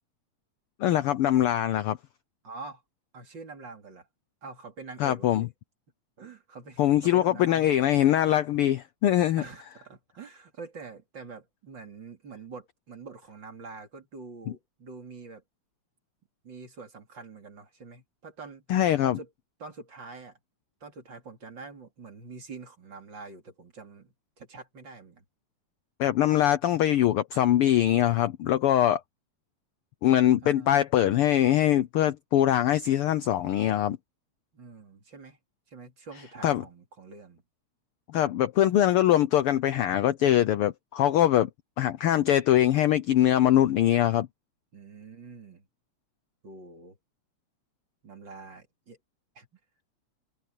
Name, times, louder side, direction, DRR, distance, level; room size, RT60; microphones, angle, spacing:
voice 1, 0.8-2.0 5.0-5.5 6.8-9.4 18.7-19.2 26.0-29.0 30.0-34.0 36.4-36.6 38.1-41.5 41.8-44.3, left 12 dB, 85° left, 1.2 m, -22 dB
voice 2, 2.4-2.8 3.1-4.1 4.4-5.5 6.2-7.8 9.4-15.4 16.4-19.3 19.6-20.4 20.8-25.2 30.4-30.8 34.5-35.4 35.7-37.4 44.7-45.7 46.4-47.0 48.0-49.0 49.3-49.5, right 4 dB, 40° right, 3.3 m, -45 dB
omnidirectional pair, 3.4 m